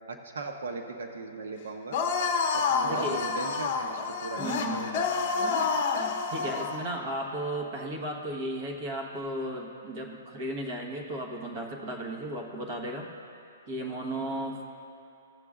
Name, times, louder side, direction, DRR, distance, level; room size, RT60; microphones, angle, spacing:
voice 1, 0.1-2.0 2.5-5.3, right 3 dB, 75° right, 3 dB, 0.8 m, -38 dB
sound 1, 1.9-6.8, left 5 dB, 35° left, 0.9 m, -28 dB
voice 2, 2.8-3.4 4.4-4.9 6.3-13.1 13.7-14.7, right 1 dB, 35° right, 1 dB, 1.3 m, -35 dB
16.5 x 7.9 x 2.4 m, 2.6 s
hypercardioid pair, 175°, 0 cm